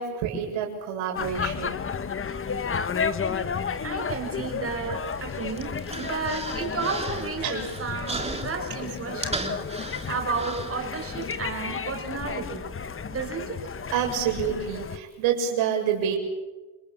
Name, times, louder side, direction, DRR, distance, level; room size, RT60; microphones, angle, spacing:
voice 1, 0.0-1.8 7.4-7.6 13.9-16.2, right 8 dB, 75° right, 2 dB, 7.4 m, -27 dB
sound 1, 1.2-15.0, left 6 dB, 25° left, 1.4 m, -32 dB
voice 2, 3.8-12.6 13.1-13.7, right 4 dB, 30° right, 4 dB, 6.6 m, -32 dB
Human voice, 5.1-11.3, right 2 dB, 15° right, 3.1 m, -37 dB
29.5 x 21.0 x 7.2 m, 1.2 s
cardioid pair, 105°, 47 cm